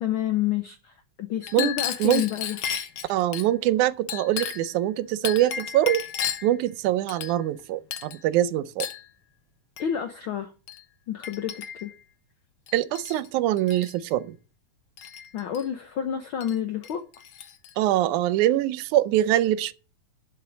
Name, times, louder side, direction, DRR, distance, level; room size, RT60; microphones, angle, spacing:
voice 1, 0.0-2.6 9.8-10.5 11.1-11.9 15.3-17.1, left 9 dB, 80° left, 1.1 m, -29 dB
Chink clink, 1.4-3.5 4.1-4.8 5.2-6.6 7.1-7.6 7.9-8.2 8.8-9.1 9.8-9.9 10.7-10.8 11.2-11.9 12.7-13.3 13.6-13.9 15.0-15.6 16.4-16.5 16.8-17.7, left 9 dB, 60° left, 1.8 m, -34 dB
voice 2, 3.1-6.1 6.4-8.9 12.7-14.4 17.8-19.7, right 13 dB, 90° right, 2.2 m, -23 dB
11.5 x 5.3 x 7.2 m
omnidirectional pair, 3.4 m